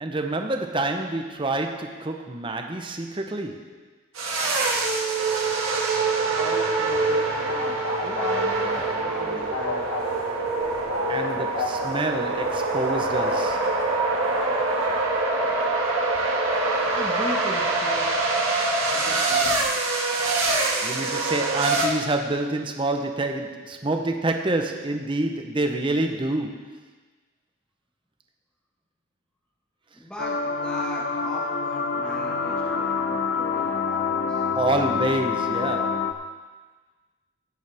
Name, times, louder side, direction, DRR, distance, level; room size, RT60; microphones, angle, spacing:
voice 1, 0.0-3.8 11.1-13.7 20.8-26.8 34.5-36.1, right 2 dB, 25° right, 4 dB, 0.8 m, -27 dB
sound 1, 4.1-21.8, right 3 dB, 80° right, 1.9 m, -25 dB
voice 2, 6.2-9.9 16.8-18.1 18.9-19.7 29.9-34.5, left 1 dB, 5° left, -5 dB, 1.4 m, -38 dB
sound 2, 7.0-13.4, left 2 dB, 80° left, 1.1 m, -34 dB
sound 3, 30.2-36.1, left 5 dB, 50° left, 0.7 m, -26 dB
15.5 x 9.4 x 3.5 m, 1.3 s
head